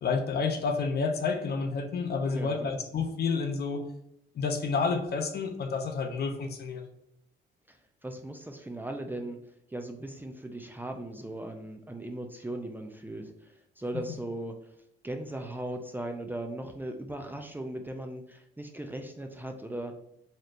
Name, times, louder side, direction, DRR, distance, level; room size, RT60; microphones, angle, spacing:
voice 1, 0.0-3.8 4.4-6.8, left 4 dB, 55° left, 6 dB, 0.7 m, -29 dB
voice 2, 2.3-2.7 7.7-7.8 8.0-9.4 9.7-14.6 15.0-20.0, right 1 dB, 10° right, 4 dB, 0.5 m, -38 dB
4.2 x 3.1 x 2.5 m, 0.78 s
cardioid pair, 90°, 20 cm